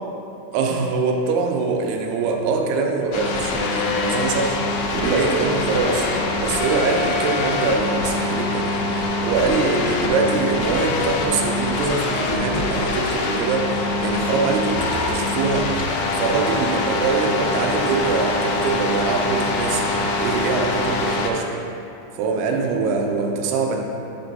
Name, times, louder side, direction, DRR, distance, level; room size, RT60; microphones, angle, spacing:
voice 1, 0.5-4.6 4.9-21.6 22.2-23.8, right 4 dB, 85° right, 2 dB, 2.6 m, -23 dB
sound 1, 3.1-21.3, left 3 dB, 85° left, 2.0 m, -24 dB
6.7 x 4.4 x 4.0 m, 2.8 s
omnidirectional pair, 4.5 m